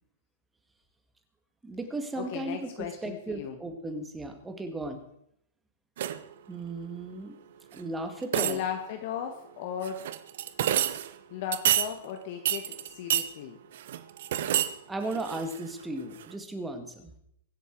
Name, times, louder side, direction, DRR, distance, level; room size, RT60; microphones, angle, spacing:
voice 1, 1.6-5.0 6.5-7.4 7.7-8.6 14.9-17.1, right 2 dB, 10° right, 6 dB, 2.0 m, -36 dB
voice 2, 2.1-3.6 8.3-10.0 11.3-13.6, left 8 dB, 55° left, 5 dB, 1.6 m, -36 dB
sound 1, 6.0-6.3 7.8-7.9 8.2-8.9 9.8-11.1 11.5-11.9 12.5-13.3 13.7-14.7 15.0-15.8 16.2-16.3, right 11 dB, 65° right, 1.0 m, -28 dB
23.5 x 7.9 x 4.7 m, 0.73 s
hypercardioid pair, 140°, 0 cm